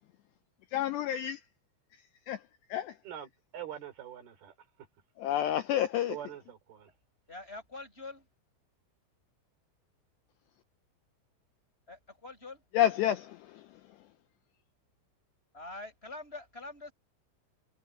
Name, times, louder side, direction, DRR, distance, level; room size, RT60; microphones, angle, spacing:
voice 1, 0.7-1.4 2.3-2.4 2.7-3.0 5.2-6.2 12.7-13.7, left 11 dB, 80° left, 2.5 m, -29 dB
voice 2, 3.0-4.9 6.0-6.9, right 10 dB, 50° right, 5.5 m, -44 dB
voice 3, 7.3-8.3 11.9-12.6 15.5-16.9, left 2 dB, 10° left, 7.0 m, -45 dB
omnidirectional pair, 5.8 m